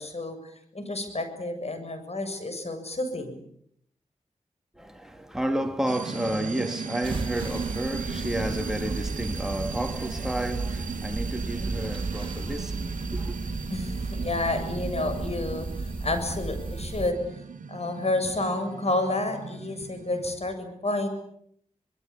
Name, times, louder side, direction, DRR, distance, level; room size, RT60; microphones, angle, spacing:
voice 1, 0.0-3.5 9.4-9.5 11.3-11.8 13.7-15.7 16.0-17.2 17.7-21.1, left 2 dB, 50° left, 7.4 m, -30 dB
voice 2, 4.8-13.4, right 1 dB, 5° right, 3.0 m, -31 dB
sound 1, 5.9-20.3, right 5 dB, 80° right, 1.6 m, -37 dB
sound 2, 7.0-17.1, right 3 dB, 40° right, 2.9 m, -34 dB
26.0 x 21.5 x 8.7 m
cardioid pair, 50°, 13 cm